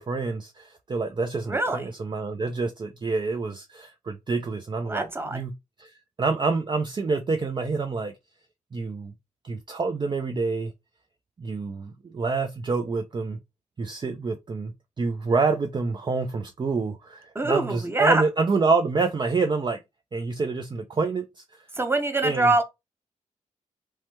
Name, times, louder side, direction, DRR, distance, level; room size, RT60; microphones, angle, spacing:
voice 1, 0.0-5.5 5.8-8.1 8.7-9.1 9.4-10.7 11.4-13.4 13.8-14.7 15.0-19.8 20.1-21.4 22.2-22.5, right 4 dB, 35° right, 0.4 m, -27 dB
voice 2, 1.5-1.9 4.9-5.4 17.3-18.2 21.7-22.6, right 2 dB, 15° right, 0.8 m, -24 dB
3.1 x 2.2 x 2.9 m
cardioid pair, 60°, 14 cm